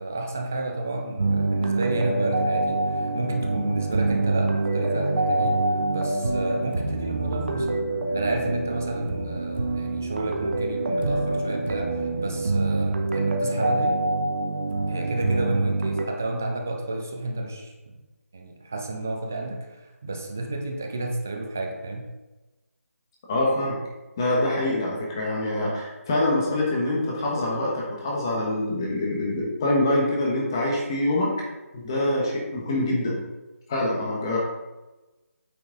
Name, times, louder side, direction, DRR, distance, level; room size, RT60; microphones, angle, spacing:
voice 1, 0.0-7.8 8.1-14.0 14.9-17.9 18.3-22.0, right 2 dB, 10° right, 2 dB, 0.3 m, -31 dB
sound 1, 1.2-16.0, right 2 dB, 40° right, 1.0 m, -25 dB
voice 2, 23.3-23.8 24.2-31.3 31.7-33.2 33.7-34.4, left 1 dB, 15° left, -3 dB, 1.2 m, -25 dB
8.8 x 6.0 x 3.9 m, 1.1 s
figure-of-eight pair, 175°, 8 cm